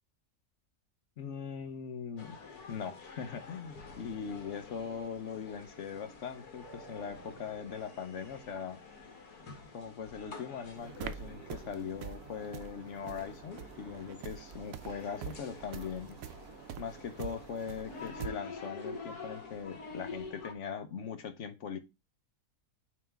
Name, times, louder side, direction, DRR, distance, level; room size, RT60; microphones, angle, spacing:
voice 1, 1.2-2.4 2.7-8.8 9.7-16.2 16.8-21.8, left 6 dB, 55° left, 1.0 m, -40 dB
sound 1, 2.2-20.5, left 4 dB, 90° left, 1.7 m, -48 dB
sound 2, 6.6-13.6, right 3 dB, 40° right, 2.3 m, -59 dB
sound 3, 10.8-18.3, right 9 dB, 70° right, 1.0 m, -45 dB
9.1 x 3.2 x 3.5 m
omnidirectional pair, 1.6 m